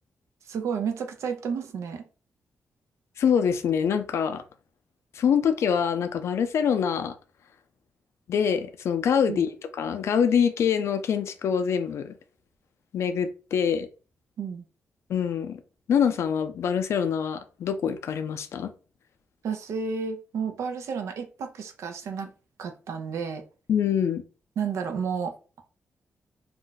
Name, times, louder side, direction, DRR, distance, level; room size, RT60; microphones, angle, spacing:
voice 1, 0.5-2.0 9.3-9.4 14.4-14.6 19.4-22.3 22.6-23.4 24.6-25.3, right 6 dB, 85° right, 6 dB, 0.5 m, -31 dB
voice 2, 3.2-4.4 5.1-7.2 8.3-12.1 12.9-13.9 15.1-15.6 15.9-18.7 23.7-24.2, left 7 dB, 70° left, 9 dB, 0.4 m, -25 dB
2.4 x 2.2 x 3.8 m, 0.35 s
wide cardioid pair, 170°, 5 cm